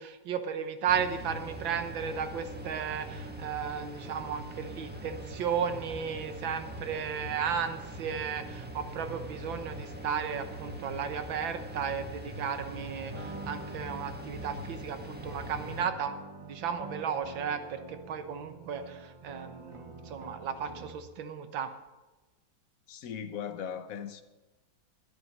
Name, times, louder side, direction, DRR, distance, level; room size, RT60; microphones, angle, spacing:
voice 1, 0.0-21.7, right 7 dB, 85° right, 1.8 m, -34 dB
sound 1, 0.9-15.9, right 1 dB, 5° right, 1.3 m, -42 dB
sound 2, 13.1-21.1, right 2 dB, 35° right, 0.5 m, -46 dB
voice 2, 22.9-24.2, left 8 dB, 55° left, 1.1 m, -38 dB
12.5 x 11.0 x 5.3 m
omnidirectional pair, 2.1 m